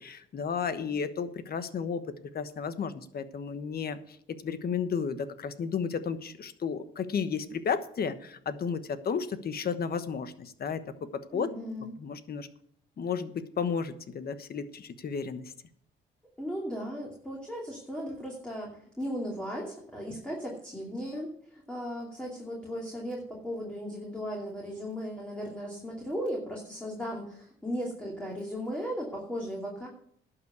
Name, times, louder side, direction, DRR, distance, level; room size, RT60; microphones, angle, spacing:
voice 1, 0.0-2.0 2.3-4.2 4.4-10.8 11.1-11.5 12.0-12.5 13.0-15.5, left 6 dB, 50° left, 11 dB, 1.2 m, -33 dB
voice 2, 11.3-11.9 16.4-29.9, equal, 5° left, -2 dB, 2.7 m, -36 dB
11.5 x 5.9 x 8.2 m, 0.65 s
cardioid pair, 90°, 20 cm